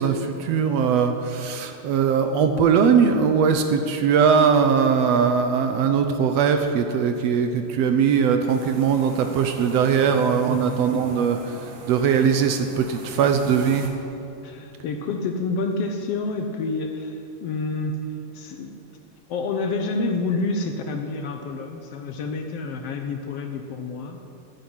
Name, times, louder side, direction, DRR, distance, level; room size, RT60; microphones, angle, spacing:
voice 1, 0.0-13.9, right 6 dB, 70° right, 6 dB, 1.8 m, -20 dB
sound 1, 8.5-13.9, right 4 dB, 90° right, 2.9 m, -41 dB
voice 2, 10.4-11.2 14.4-18.0 18.3-18.8 19.3-24.2, left 3 dB, 65° left, 5 dB, 1.7 m, -28 dB
10.5 x 10.0 x 9.7 m, 2.6 s
omnidirectional pair, 3.3 m